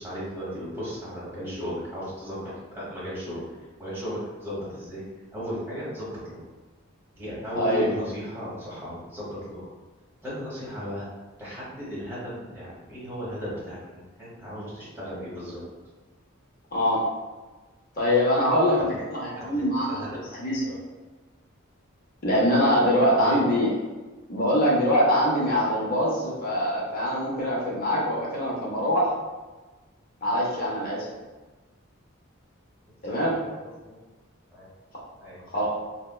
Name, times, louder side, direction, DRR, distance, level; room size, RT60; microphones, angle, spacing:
voice 1, 0.0-3.4 3.8-5.0 5.3-6.4 7.1-9.7 10.2-11.1 11.4-15.6 18.8-19.0 19.3-20.2 23.2-23.4 33.0-34.0 34.5-34.7 35.1-35.7, equal, 10° right, -9 dB, 1.0 m, -36 dB
voice 2, 7.5-7.9 16.7-17.1 17.9-20.0 20.3-20.8 22.2-23.7 24.3-29.1 30.2-31.1 33.0-33.4 35.5-35.7, equal, 45° left, -4 dB, 0.6 m, -23 dB
4.0 x 2.1 x 2.3 m, 1.2 s
head